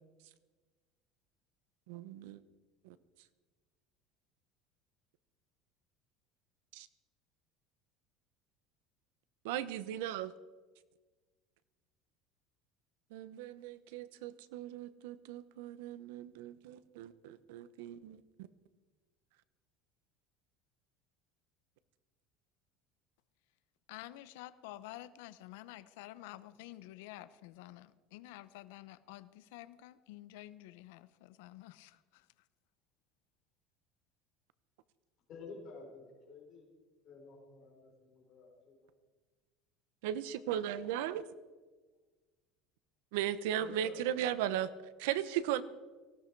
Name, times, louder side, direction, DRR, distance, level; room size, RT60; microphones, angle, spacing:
voice 1, 1.9-2.4 2.8-3.0 6.7-6.9 9.4-10.3 13.1-18.5 40.0-41.2 43.1-44.7 45.0-45.6, right 11 dB, 85° right, 15 dB, 0.9 m, -37 dB
voice 2, 23.9-32.2, left 15 dB, 80° left, 15 dB, 0.8 m, -50 dB
voice 3, 35.3-36.7 37.0-38.9 43.5-44.1, left 4 dB, 35° left, -1 dB, 4.7 m, -51 dB
18.0 x 16.0 x 4.7 m, 1.3 s
cardioid pair, 170°, 0 cm